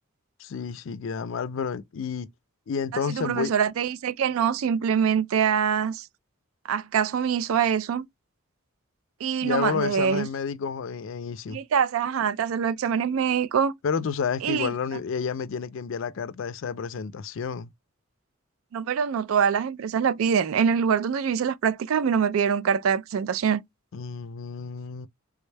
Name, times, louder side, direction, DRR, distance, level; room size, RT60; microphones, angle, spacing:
voice 1, 0.4-2.3 2.7-3.5 9.4-11.6 13.8-17.7 23.9-25.1, left 6 dB, 65° left, 0.4 m, -30 dB
voice 2, 3.1-6.1 6.7-8.1 9.2-10.3 11.5-13.7 14.4-14.7 18.7-23.6, right 7 dB, 75° right, 0.3 m, -24 dB
3.5 x 2.1 x 3.2 m
head